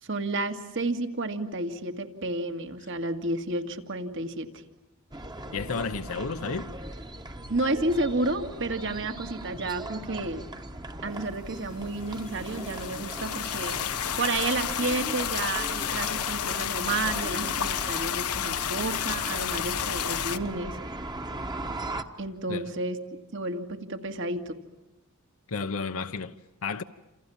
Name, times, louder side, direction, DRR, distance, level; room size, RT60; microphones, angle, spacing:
voice 1, 0.0-4.6 7.5-10.5 11.0-13.8 14.2-20.8 22.2-23.0 23.3-24.6, right 2 dB, 55° right, 2.2 m, -31 dB
sound 1, 5.1-22.0, right 1 dB, 20° right, 1.3 m, -39 dB
voice 2, 5.5-6.8 22.5-22.6 25.5-26.8, left 4 dB, 70° left, 0.9 m, -32 dB
sound 2, 12.0-20.4, left 9 dB, 85° left, 1.1 m, -31 dB
29.5 x 27.5 x 7.2 m
head